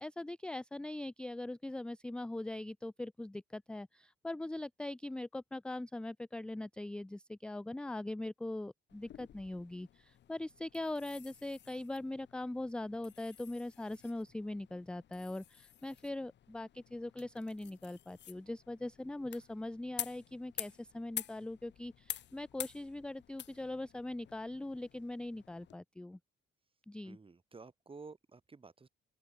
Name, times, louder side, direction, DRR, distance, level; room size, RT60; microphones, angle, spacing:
voice 1, 0.0-26.2 26.9-27.2, left 2 dB, 5° left, 0.3 m, -41 dB
sound 1, 8.9-25.8, left 11 dB, 65° left, 1.4 m, -49 dB
voice 2, 27.0-28.9, right 4 dB, 25° right, 4.1 m, -52 dB
open air
cardioid pair, 90°, 20 cm